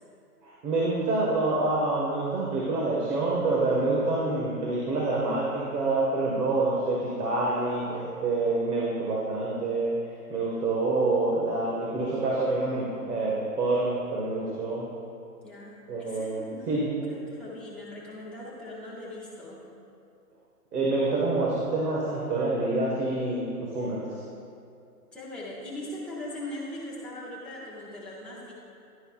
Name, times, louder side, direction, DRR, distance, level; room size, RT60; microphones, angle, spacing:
voice 1, 0.4-9.9 10.3-14.9 15.9-16.8 20.7-24.0, right 2 dB, 75° right, -5 dB, 1.9 m, -27 dB
voice 2, 15.4-19.6 25.1-28.5, left 1 dB, ahead, -8 dB, 0.7 m, -40 dB
11.0 x 10.0 x 2.5 m, 2.5 s
hypercardioid pair, 145°, 47 cm